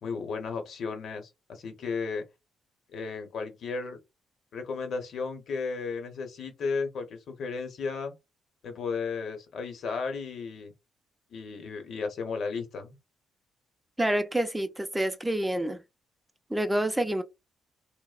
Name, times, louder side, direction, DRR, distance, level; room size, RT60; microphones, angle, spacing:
voice 1, 0.0-2.3 2.9-4.0 4.5-8.2 8.6-10.7 11.3-13.0, left 4 dB, 65° left, 0.8 m, -34 dB
voice 2, 14.0-15.8 16.5-17.2, right 1 dB, 10° right, 0.4 m, -27 dB
2.7 x 2.0 x 2.4 m
cardioid pair, 90°, 0 cm